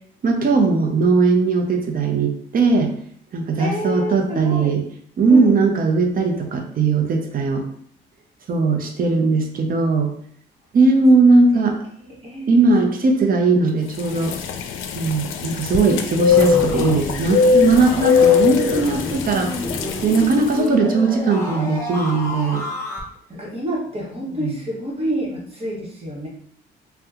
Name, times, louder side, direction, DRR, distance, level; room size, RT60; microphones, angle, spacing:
voice 1, 0.2-2.9 3.3-4.8 5.2-7.6 8.5-10.1 10.7-11.8 12.5-14.4 14.9-19.5 20.0-22.6 24.4-24.5, right 3 dB, 45° right, 3 dB, 0.6 m, -18 dB
voice 2, 3.6-4.8 5.3-5.5 12.0-12.7 23.3-26.3, equal, 30° right, -3 dB, 1.2 m, -28 dB
sound 1, 14.0-20.6, left 6 dB, 85° left, 0.4 m, -20 dB
sound 2, 16.3-23.0, left 1 dB, 10° left, 0.9 m, -30 dB
2.8 x 2.2 x 3.6 m, 0.65 s
cardioid pair, 90°, 20 cm